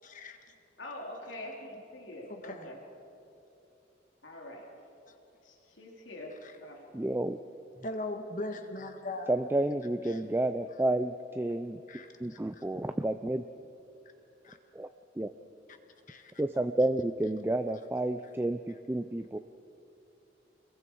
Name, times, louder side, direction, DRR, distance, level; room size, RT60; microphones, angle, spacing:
voice 1, 0.0-0.5 2.3-2.7 5.1-5.2 6.3-6.6 7.8-9.3 10.1-10.2 11.9-12.6 14.4-14.6 16.1-16.3, left 2 dB, 40° left, 5 dB, 1.7 m, -40 dB
voice 2, 0.8-1.6 1.9-2.8 4.2-4.7 5.4-6.3 6.6-6.8, left 1 dB, 80° left, -1 dB, 3.3 m, -44 dB
voice 3, 6.9-7.4 9.3-11.8 12.2-13.4 14.7-14.9 15.2-15.3 16.4-19.4, right 1 dB, 10° right, 8 dB, 0.4 m, -30 dB
30.0 x 21.5 x 4.6 m, 2.8 s
head